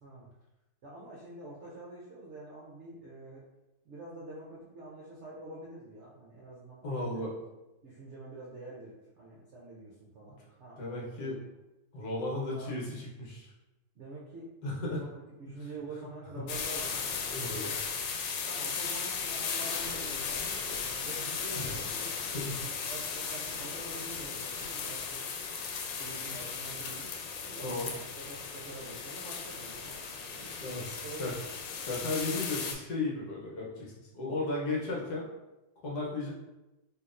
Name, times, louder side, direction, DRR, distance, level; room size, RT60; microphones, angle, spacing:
voice 1, 0.8-3.4 3.8-7.2 7.8-11.4 12.5-12.8 13.9-18.1 18.4-25.3 26.0-31.4 32.3-32.5, right 2 dB, 65° right, -6 dB, 0.7 m, -47 dB
voice 2, 6.8-7.3 10.8-11.4 11.9-13.5 14.6-15.0 17.3-17.6 21.5-21.7 22.2-22.6 27.6-27.9 30.6-31.3 31.8-35.3 35.8-36.3, left 2 dB, 65° left, -4 dB, 1.4 m, -35 dB
sound 1, 16.5-32.7, left 5 dB, 90° left, 1.3 m, -36 dB
4.4 x 2.8 x 2.5 m, 0.98 s
omnidirectional pair, 1.9 m